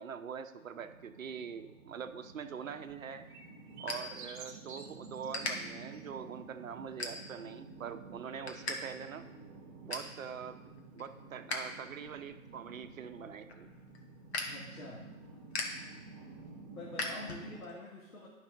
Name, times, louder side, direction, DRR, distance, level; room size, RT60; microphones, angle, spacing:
voice 1, 0.0-3.3 3.8-9.3 9.8-10.6 10.9-13.7, right 7 dB, 70° right, 9 dB, 0.8 m, -44 dB
sound 1, 0.8-17.6, right 3 dB, 15° right, 0.8 m, -52 dB
sound 2, 2.7-4.8 5.1-5.5 6.1-6.3 6.9-7.6 7.9-8.8 9.0-9.1 9.5-10.2 10.6-11.6 12.0-17.7, left 3 dB, 50° left, 1.4 m, -41 dB
sound 3, 2.9-5.5 5.9-6.0, right 4 dB, 35° right, 1.4 m, -51 dB
voice 2, 14.4-15.0 16.7-18.3, left 2 dB, 85° left, -2 dB, 1.7 m, -46 dB
11.0 x 5.5 x 3.6 m, 1.1 s
hypercardioid pair, 145°, 42 cm